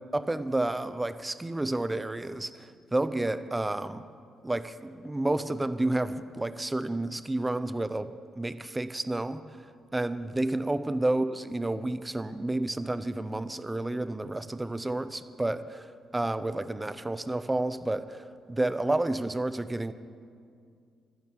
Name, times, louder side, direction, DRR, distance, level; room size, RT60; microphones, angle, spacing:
voice 1, 0.1-4.1 4.4-9.5 9.9-19.9, right 2 dB, 15° right, 13 dB, 0.6 m, -30 dB
11.0 x 10.5 x 7.2 m, 2.3 s
cardioid pair, 90°, 0 cm